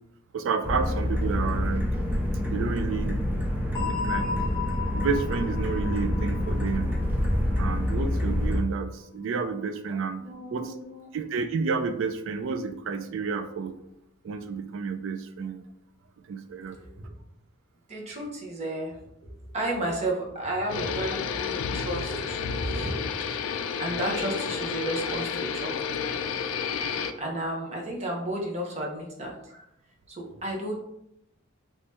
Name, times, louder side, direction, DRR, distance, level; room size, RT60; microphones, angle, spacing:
voice 1, 0.3-1.8 2.5-3.2 3.8-4.3 4.9-6.9 7.6-10.2 10.5-10.7 11.1-13.8 14.2-15.6 16.3-16.8, right 5 dB, 65° right, 8 dB, 0.3 m, -30 dB
sound 1, 0.6-8.6, left 1 dB, 10° right, 0.5 m, -27 dB
sound 2, 3.7-8.4, left 6 dB, 15° left, 0.8 m, -36 dB
voice 2, 3.9-4.6 9.9-11.1 17.0-17.1 17.9-19.0 19.5-23.4 23.8-25.9 26.5-26.7 27.1-29.6 30.1-30.7, right 1 dB, 35° right, -1 dB, 0.8 m, -33 dB
sound 3, 20.7-27.1, left 6 dB, 85° left, 0.3 m, -31 dB
3.1 x 2.8 x 3.4 m, 0.79 s
head